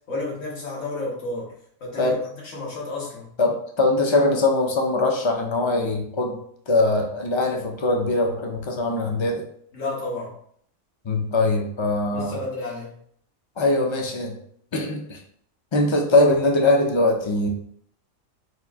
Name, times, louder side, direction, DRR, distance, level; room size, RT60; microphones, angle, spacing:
voice 1, 0.1-1.5 1.8-3.3 9.7-10.3 12.1-13.0, left 2 dB, 75° left, -4 dB, 1.6 m, -31 dB
voice 2, 3.4-9.4 11.0-12.4 13.6-14.4 14.7-15.2 15.7-17.5, left 2 dB, 40° left, 2 dB, 0.4 m, -22 dB
4.4 x 2.6 x 3.5 m, 0.65 s
omnidirectional pair, 1.3 m